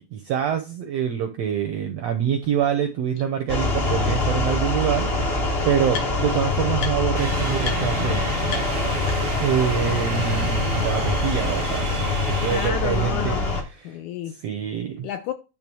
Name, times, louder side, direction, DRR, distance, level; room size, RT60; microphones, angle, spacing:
voice 1, 0.0-8.3 9.4-13.4 13.7-14.0 14.4-15.1, right 9 dB, 75° right, 1.5 m, -26 dB
sound 1, 2.4-2.5 3.2-3.3 4.5-4.6 4.9-6.4 6.8-7.2 7.6-7.8 8.1-8.2 8.5-9.5, left 6 dB, 60° left, 1.3 m, -36 dB
sound 2, 3.5-13.6, left 2 dB, 40° left, 0.8 m, -24 dB
sound 3, 7.1-12.7, right 4 dB, 60° right, 0.6 m, -32 dB
voice 2, 12.4-14.4 15.0-15.3, left 10 dB, 75° left, 1.8 m, -31 dB
10.5 x 3.5 x 6.1 m
omnidirectional pair, 4.0 m